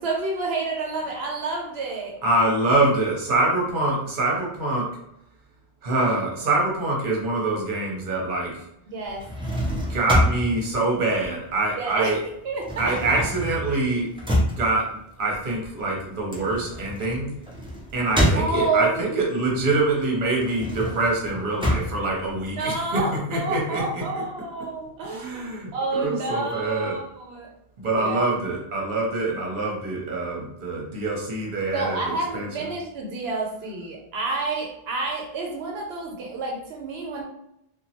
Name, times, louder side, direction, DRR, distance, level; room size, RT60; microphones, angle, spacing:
voice 1, 0.0-2.2 8.9-9.3 11.8-12.1 12.4-13.2 18.3-19.1 22.6-27.5 27.8-28.2 31.7-37.2, right 3 dB, 85° right, 0 dB, 0.9 m, -29 dB
voice 2, 2.2-4.9 5.8-8.6 9.7-12.2 12.8-14.1 14.4-17.3 17.9-24.0 25.1-27.0 27.8-32.7, right 2 dB, 55° right, -2 dB, 1.0 m, -25 dB
sound 1, 9.1-11.9 12.2-19.0 19.5-23.0, equal, 10° right, 0.4 m, -27 dB
2.9 x 2.2 x 2.8 m, 0.78 s
omnidirectional pair, 1.0 m